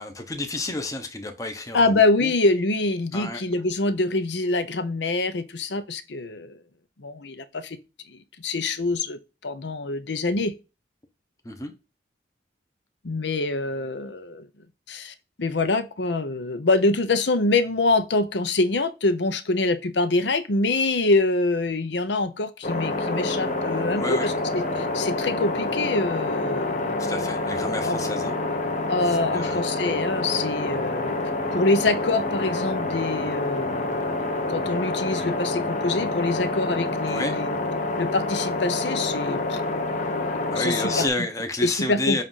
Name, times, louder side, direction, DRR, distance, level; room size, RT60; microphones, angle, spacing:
voice 1, 0.0-2.3 3.1-3.4 11.4-11.7 24.0-24.3 27.0-28.3 29.2-29.6 37.1-37.4 40.5-42.2, left 2 dB, 20° left, 0.9 m, -30 dB
voice 2, 1.7-6.6 7.0-7.8 8.1-10.5 13.0-14.5 14.9-27.1 27.8-28.0 28.9-31.1 31.5-34.0 34.5-37.6 37.9-39.6 40.6-41.3 41.6-42.2, left 2 dB, 75° left, 0.7 m, -25 dB
sound 1, 22.6-41.1, left 2 dB, 40° left, 1.0 m, -27 dB
7.4 x 2.6 x 5.6 m
head